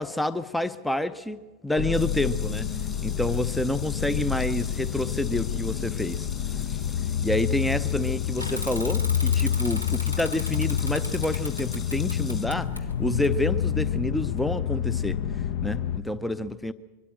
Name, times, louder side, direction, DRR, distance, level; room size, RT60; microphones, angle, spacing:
voice 1, 0.0-2.7 3.0-6.3 6.7-6.8 7.2-12.7 13.0-15.2 15.6-16.7, left 1 dB, 5° left, 14 dB, 0.6 m, -28 dB
sound 1, 1.8-16.0, left 9 dB, 50° left, 0.7 m, -28 dB
sound 2, 1.9-12.4, left 5 dB, 20° left, 2.3 m, -44 dB
Bicycle / Mechanisms, 8.4-13.8, left 1 dB, 80° left, 1.2 m, -37 dB
23.5 x 13.0 x 8.8 m, 1.2 s
figure-of-eight pair, 90°, 0 cm